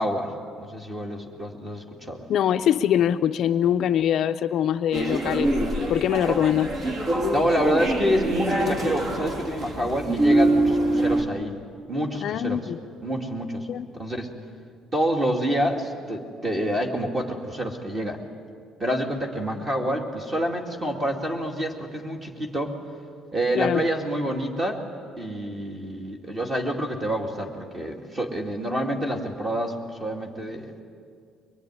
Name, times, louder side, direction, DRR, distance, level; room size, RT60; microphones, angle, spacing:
voice 1, 0.0-2.2 6.3-6.4 7.3-11.5 11.9-12.7 13.0-13.7 13.9-14.3 14.9-18.2 18.8-22.8 23.3-24.8 25.2-30.8, equal, 20° right, 2 dB, 2.3 m, -27 dB
voice 2, 2.3-5.5 5.9-6.7 12.2-12.8 13.7-13.9 23.5-23.8, left 10 dB, 50° left, 8 dB, 0.6 m, -23 dB
sound 1, 4.9-11.2, right 1 dB, 45° right, 2.9 m, -24 dB
23.0 x 22.0 x 9.6 m, 2.2 s
cardioid pair, 170°, 0 cm